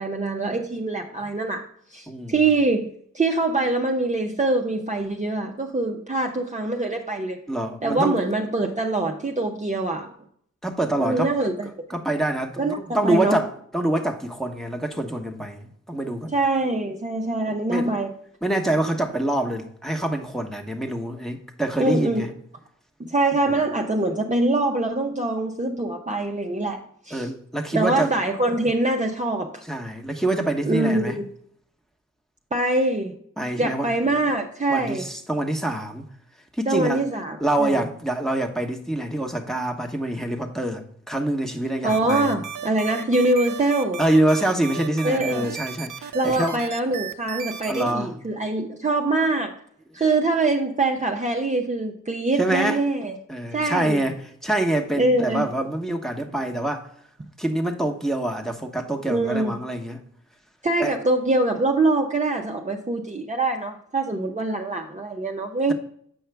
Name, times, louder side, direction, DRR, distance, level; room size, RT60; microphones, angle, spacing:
voice 1, 0.0-1.6 1.9-2.9 3.1-7.4 7.8-10.1 11.0-11.7 12.6-13.4 16.3-18.1 21.8-22.3 23.0-27.3 27.7-29.6 30.6-31.2 32.5-33.2 33.6-35.1 36.7-37.8 41.8-44.0 45.0-45.5 46.1-49.6 49.9-53.2 53.5-54.0 55.0-55.5 59.1-59.5 60.6-65.7, right 2 dB, 25° right, 0.8 m, -24 dB
voice 2, 7.5-8.3 10.6-11.3 11.9-16.3 17.7-17.9 18.4-22.3 23.5-23.6 27.1-28.1 29.7-31.2 33.4-33.9 34.7-36.1 36.5-37.0 37.4-42.3 44.0-46.6 47.7-48.2 52.4-52.8 53.3-56.9 57.4-60.0 60.8-61.0, right 1 dB, ahead, 1.2 m, -25 dB
sound 1, 41.9-47.9, right 8 dB, 75° right, 0.7 m, -34 dB
7.8 x 5.5 x 3.4 m
cardioid pair, 65°, 31 cm